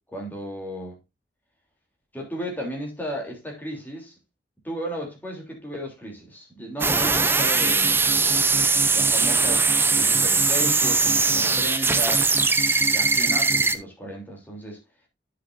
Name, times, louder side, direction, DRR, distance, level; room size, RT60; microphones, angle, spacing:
voice 1, 0.1-1.0 2.1-4.2 4.6-8.6 8.9-9.7 9.9-12.3 12.9-14.8, equal, 10° left, 3.1 m, -35 dB
sound 1, 6.8-13.8, right 4 dB, 15° right, 0.6 m, -20 dB
10.0 x 7.6 x 2.6 m
head